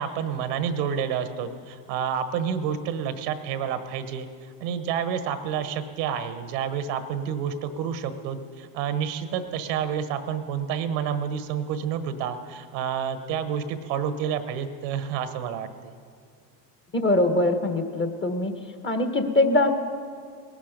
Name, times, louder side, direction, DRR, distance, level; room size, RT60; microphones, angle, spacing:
voice 1, 0.0-15.9, right 8 dB, 85° right, 10 dB, 1.2 m, -29 dB
voice 2, 16.9-18.5 18.8-19.7, left 2 dB, 25° left, 6 dB, 1.6 m, -22 dB
19.0 x 11.5 x 5.2 m, 2.1 s
supercardioid pair, 90°, 48 cm